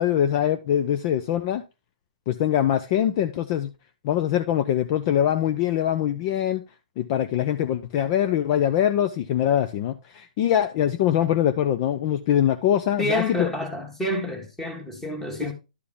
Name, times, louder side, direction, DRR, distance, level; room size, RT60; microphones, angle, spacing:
voice 1, 0.0-1.6 2.3-3.7 4.0-6.6 7.0-13.5 15.4-15.5, left 10 dB, 35° left, 0.6 m, -23 dB
voice 2, 13.0-15.5, left 1 dB, 5° left, 1.7 m, -28 dB
11.5 x 4.8 x 3.5 m
hypercardioid pair, 140°, 5 cm